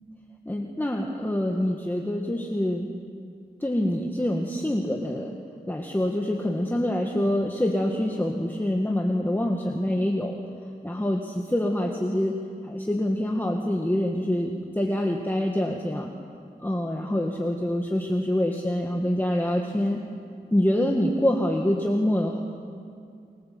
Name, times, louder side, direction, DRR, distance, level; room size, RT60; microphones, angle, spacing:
voice 1, 0.5-2.9 3.6-5.3 5.7-10.4 10.8-12.4 12.6-16.1 16.6-20.0 20.5-22.4, left 1 dB, 10° left, 1 dB, 1.9 m, -25 dB
30.0 x 21.0 x 7.8 m, 2.3 s
wide cardioid pair, 90°, 17 cm